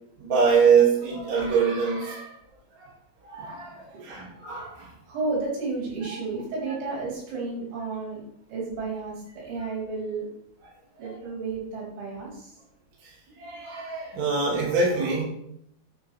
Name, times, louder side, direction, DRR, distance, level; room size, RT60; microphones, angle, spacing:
voice 1, 0.2-2.3 3.2-3.8 4.0-4.9 13.0-13.1 13.4-15.2, right 5 dB, 40° right, -6 dB, 4.0 m, -23 dB
voice 2, 5.1-8.2 8.5-10.3 11.0-12.5, right 3 dB, 70° right, -6 dB, 6.5 m, -32 dB
9.8 x 6.2 x 6.0 m, 0.73 s
omnidirectional pair, 5.7 m